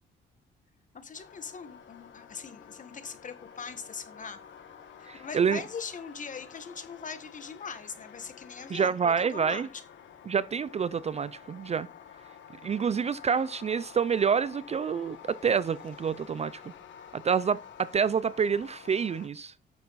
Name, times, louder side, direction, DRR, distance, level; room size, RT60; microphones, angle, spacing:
voice 1, 0.9-4.4 5.0-9.7, left 5 dB, 40° left, 1.6 m, -41 dB
sound 1, 1.1-19.3, left 8 dB, 70° left, 1.4 m, -50 dB
voice 2, 5.1-5.6 8.7-9.7 10.3-11.9 12.6-16.7 17.1-19.5, right 6 dB, 35° right, 0.4 m, -27 dB
9.6 x 6.6 x 4.1 m
cardioid pair, 90°, 20 cm